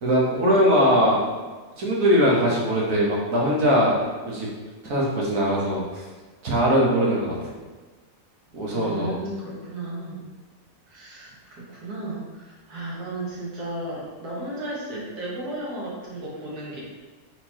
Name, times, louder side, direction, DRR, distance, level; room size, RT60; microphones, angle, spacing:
voice 1, 0.0-1.2 1.8-4.0 4.3-4.5 4.8-6.0 6.4-7.3 8.5-9.2, equal, 60° right, -4 dB, 1.5 m, -21 dB
voice 2, 8.7-10.3 10.9-16.8, right 1 dB, 80° right, -5 dB, 1.7 m, -34 dB
4.3 x 4.0 x 2.9 m, 1.3 s
omnidirectional pair, 1.6 m